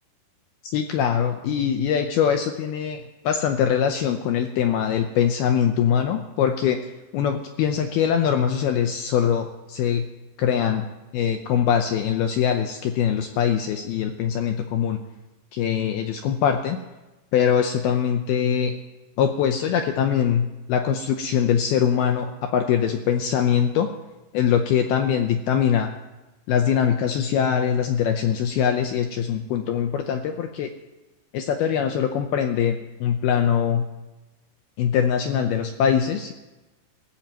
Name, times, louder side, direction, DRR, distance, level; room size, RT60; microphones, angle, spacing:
voice 1, 0.7-6.8 7.1-10.1 10.4-10.9 11.1-15.0 15.5-16.8 17.3-18.8 19.2-23.9 24.3-25.9 26.5-30.7 31.3-33.9 34.8-36.3, left 8 dB, 80° left, 5 dB, 2.3 m, -22 dB
27.5 x 14.5 x 3.0 m, 1.1 s
omnidirectional pair, 5.4 m